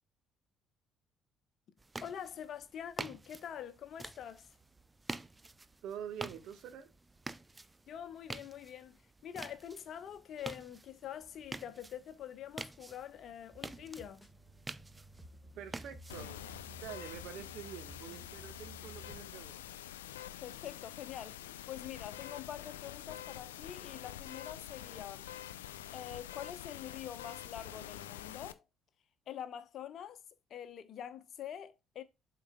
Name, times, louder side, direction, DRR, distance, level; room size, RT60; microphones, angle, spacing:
sound 1, 1.8-16.7, right 2 dB, 15° right, 0.5 m, -48 dB
voice 1, 2.0-4.5 7.9-9.0 9.2-14.2 20.4-25.3 25.9-28.6 29.3-30.2 30.5-32.0, left 9 dB, 50° left, 0.8 m, -45 dB
voice 2, 5.8-6.9 15.5-19.8, right 9 dB, 60° right, 1.3 m, -47 dB
sound 2, 13.5-19.8, equal, ahead, 1.7 m, -55 dB
sound 3, 16.1-28.5, left 11 dB, 75° left, 0.4 m, -47 dB
11.5 x 4.0 x 2.2 m
figure-of-eight pair, 50°, 0 cm